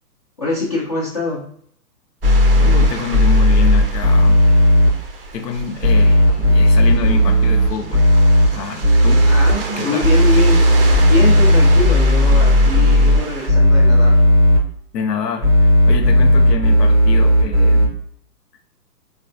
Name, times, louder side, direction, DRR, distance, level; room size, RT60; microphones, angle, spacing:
voice 1, 0.4-1.4 9.3-10.6 11.1-14.2, left 2 dB, 25° left, -6 dB, 0.4 m, -23 dB
sound 1, 2.2-4.9 5.8-8.5 8.8-9.5 10.0-13.2 13.5-14.6 15.4-17.9, left 1 dB, 10° right, 0.8 m, -12 dB
sound 2, 2.2-13.5, right 3 dB, 40° right, 0.4 m, -31 dB
voice 2, 2.6-4.4 5.3-8.1 8.5-9.3 9.8-10.1 14.9-18.0, left 5 dB, 80° left, 5 dB, 0.7 m, -26 dB
3.9 x 2.2 x 2.6 m, 0.63 s
hypercardioid pair, 145°, 48 cm